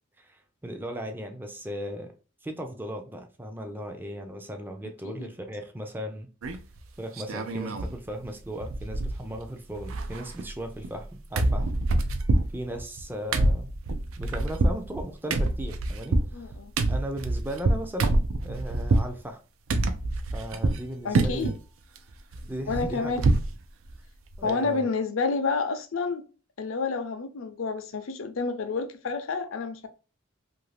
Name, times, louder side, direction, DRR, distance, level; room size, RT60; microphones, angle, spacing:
voice 1, 0.2-2.1 2.4-6.3 7.0-11.7 12.5-13.7 14.2-16.6 16.9-19.4 20.3-21.5 22.5-23.3 24.4-24.9, equal, 10° right, 0.4 m, -37 dB
sound 1, 6.4-6.8 7.2-8.0 8.2-8.3 8.6-9.5 9.7-11.1 11.4-19.1 19.7-20.8 21.1-21.6 22.0-23.5 23.9-24.0 24.3-24.5, right 2 dB, 80° right, 0.5 m, -26 dB
voice 2, 16.3-16.7 21.0-21.5 22.7-23.2 24.4-26.2 26.6-29.9, left 4 dB, 75° left, 0.6 m, -29 dB
2.7 x 2.6 x 3.2 m
head